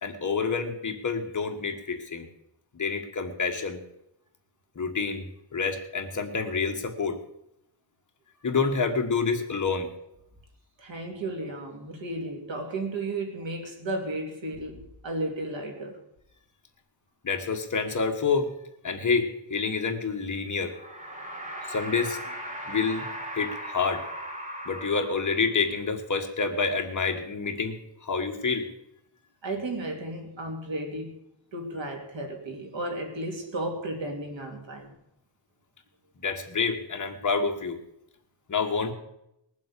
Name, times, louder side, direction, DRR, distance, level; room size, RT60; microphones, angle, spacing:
voice 1, 0.0-2.3 2.7-3.8 4.7-7.2 8.4-9.9 17.2-18.5 18.8-20.7 21.7-22.2 22.7-23.1 23.3-24.0 24.6-28.7 36.2-37.8 38.5-38.9, left 5 dB, 40° left, 1.6 m, -28 dB
voice 2, 10.8-16.0 29.4-31.2 31.5-34.9, right 2 dB, 75° right, 2.9 m, -34 dB
sound 1, 20.6-25.7, equal, 15° right, 2.0 m, -38 dB
20.0 x 7.5 x 6.9 m
wide cardioid pair, 155°, 46 cm